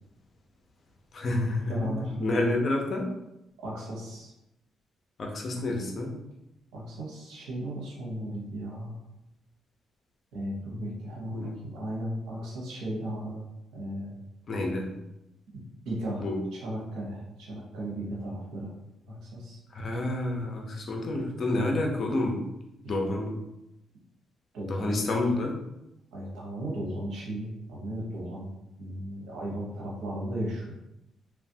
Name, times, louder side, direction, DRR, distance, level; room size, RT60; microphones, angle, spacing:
voice 1, 1.1-3.1 5.2-6.1 11.3-11.5 14.5-14.9 16.2-16.4 19.7-22.4 22.9-23.3 24.7-25.5, left 2 dB, 50° left, 1 dB, 0.6 m, -29 dB
voice 2, 1.7-2.4 3.6-4.3 6.7-9.0 10.3-13.4 13.7-14.1 15.5-16.3 16.5-18.7 19.1-19.6 22.8-23.1 24.5-25.1 26.1-28.5 28.8-30.8, right 1 dB, 85° right, -4 dB, 0.8 m, -35 dB
3.2 x 2.3 x 2.7 m, 0.89 s
cardioid pair, 90°, 0 cm